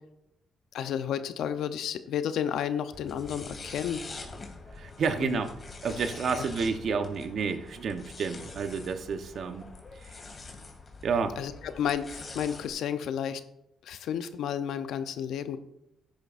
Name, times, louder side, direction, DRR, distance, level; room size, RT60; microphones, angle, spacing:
voice 1, 0.7-4.0 5.2-5.4 11.4-11.5 11.8-13.4 13.8-15.6, left 9 dB, 75° left, 11 dB, 0.8 m, -31 dB
sound 1, 2.9-12.7, left 3 dB, 35° left, 2.4 m, -45 dB
voice 2, 4.7-5.5 5.8-9.6 9.9-10.2 11.0-11.4, right 5 dB, 60° right, 8 dB, 1.0 m, -30 dB
13.5 x 10.5 x 2.6 m, 0.85 s
cardioid pair, 90°, 0 cm